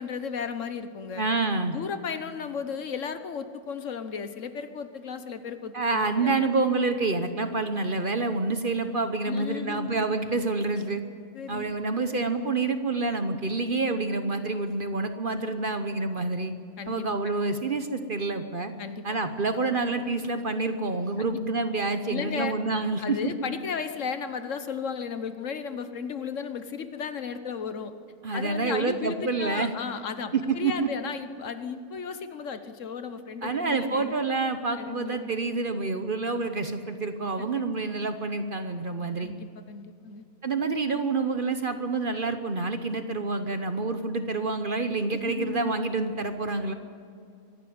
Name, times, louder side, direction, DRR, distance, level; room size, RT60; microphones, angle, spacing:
voice 1, 0.0-1.2 1.7-6.5 9.3-10.1 11.3-12.0 16.8-17.0 18.8-19.1 21.2-21.4 22.0-22.6 23.0-27.9 28.3-34.1 34.8-35.3 37.4-37.6 39.2-40.2 45.2-45.8, left 6 dB, 60° left, 10 dB, 1.3 m, -35 dB
voice 2, 1.2-1.8 5.7-11.0 11.5-16.5 16.9-18.7 19.0-23.3 28.2-29.7 30.3-30.7 33.4-39.3 40.4-46.7, right 3 dB, 40° right, 8 dB, 1.0 m, -28 dB
23.5 x 12.0 x 9.5 m, 2.4 s
omnidirectional pair, 1.5 m